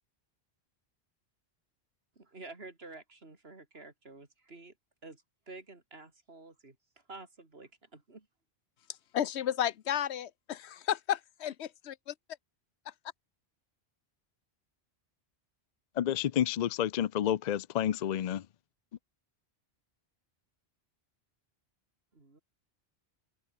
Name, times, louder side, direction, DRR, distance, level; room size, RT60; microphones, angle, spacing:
voice 1, 2.2-4.7 5.0-6.8 7.1-8.3 22.1-22.4, right 3 dB, 65° right, 3.6 m, -50 dB
voice 2, 9.1-12.1, left 10 dB, 80° left, 1.0 m, -33 dB
voice 3, 16.0-18.5, left 10 dB, 55° left, 0.5 m, -30 dB
open air
omnidirectional pair, 1.1 m